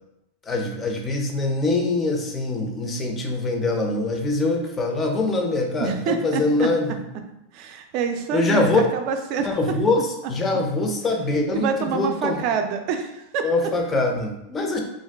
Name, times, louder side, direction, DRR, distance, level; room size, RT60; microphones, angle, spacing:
voice 1, 0.5-7.0 8.3-8.8 9.4-12.4 13.4-14.8, left 2 dB, 20° left, 2 dB, 0.4 m, -23 dB
voice 2, 5.8-6.7 7.5-9.5 11.5-13.4, right 6 dB, 50° right, 6 dB, 0.4 m, -26 dB
2.5 x 2.2 x 3.3 m, 0.87 s
supercardioid pair, 140°, 0 cm